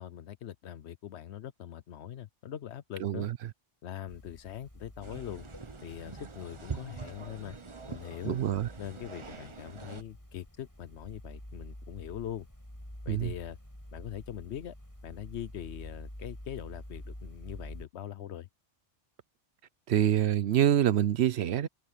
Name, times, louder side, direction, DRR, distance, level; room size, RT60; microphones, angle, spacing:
voice 1, 0.0-3.3 3.8-5.5 5.8-7.5 7.9-8.4 8.8-12.5 13.0-13.6 13.9-14.7 15.0-18.5, left 10 dB, 65° left, 0.9 m, -42 dB
voice 2, 3.0-3.4 8.2-8.7 13.1-13.3 19.9-21.7, right 11 dB, 65° right, 0.9 m, -26 dB
sound 1, 4.1-17.8, equal, 15° left, 5.9 m, -48 dB
sound 2, 5.0-10.0, right 5 dB, 30° right, 0.8 m, -44 dB
open air
omnidirectional pair, 1.2 m